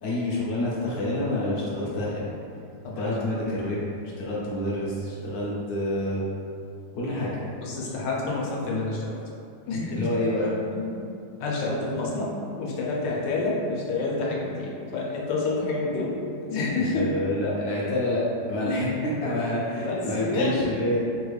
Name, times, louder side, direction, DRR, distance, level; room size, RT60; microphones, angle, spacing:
voice 1, 0.0-2.3 3.0-3.8 4.2-6.2 6.9-7.5 9.9-10.5 16.8-21.0, left 1 dB, 70° left, -6 dB, 1.0 m, -28 dB
voice 2, 2.8-3.4 7.6-9.2 9.7-10.1 10.7-11.0 11.4-12.3 12.6-16.1 16.4-17.1 18.6-18.9 19.2-19.3 19.8-20.7, left 3 dB, 85° left, -3 dB, 1.3 m, -28 dB
3.3 x 2.3 x 3.1 m, 2.6 s
omnidirectional pair, 1.9 m